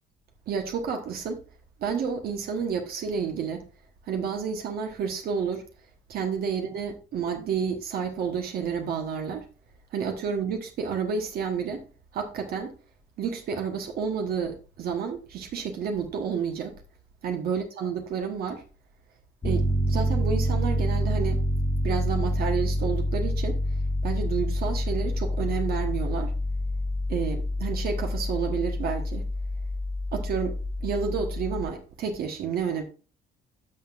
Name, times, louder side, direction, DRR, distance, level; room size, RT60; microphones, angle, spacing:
voice 1, 0.5-1.4 1.8-3.6 4.1-5.6 6.1-9.5 9.9-11.8 12.1-12.7 13.2-16.8 17.2-18.6 19.4-21.4 21.8-23.6 24.0-26.3 27.1-29.2 30.1-32.8, right 6 dB, 65° right, 1.2 m, -30 dB
Piano, 19.4-31.6, equal, 25° left, 1.3 m, -27 dB
12.0 x 5.8 x 2.5 m
cardioid pair, 110°, 17 cm